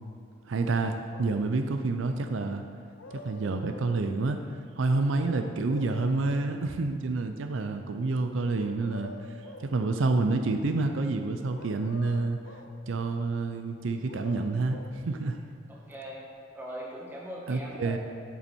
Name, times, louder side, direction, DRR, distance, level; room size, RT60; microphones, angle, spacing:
voice 1, 0.5-2.6 3.1-4.4 4.8-9.3 9.6-12.4 12.9-15.4 17.5-18.0, right 3 dB, 80° right, 6 dB, 0.5 m, -28 dB
sound 1, 0.8-1.4 2.7-3.9 5.1-6.6 8.6-9.8 11.6-12.8 13.8-15.0 16.2-16.3, left 3 dB, 85° left, 0.7 m, -47 dB
voice 2, 15.7-16.2 16.5-18.0, equal, 10° right, -5 dB, 1.5 m, -40 dB
8.4 x 7.0 x 4.4 m, 2.3 s
head